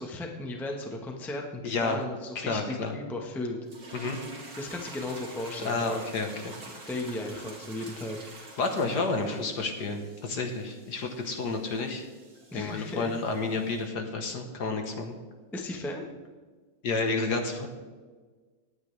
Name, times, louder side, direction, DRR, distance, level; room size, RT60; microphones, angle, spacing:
voice 1, 0.0-3.6 4.6-6.0 6.9-8.2 12.5-13.1 15.5-16.0, left 2 dB, ahead, 2 dB, 0.9 m, -35 dB
voice 2, 1.6-2.0 2.3-2.9 3.9-4.2 5.6-6.5 8.6-12.1 12.5-15.1 16.8-17.7, left 3 dB, 55° left, 4 dB, 1.7 m, -30 dB
sound 1, 3.7-13.8, right 2 dB, 50° right, 2.8 m, -47 dB
18.5 x 9.2 x 3.4 m, 1.4 s
omnidirectional pair, 2.2 m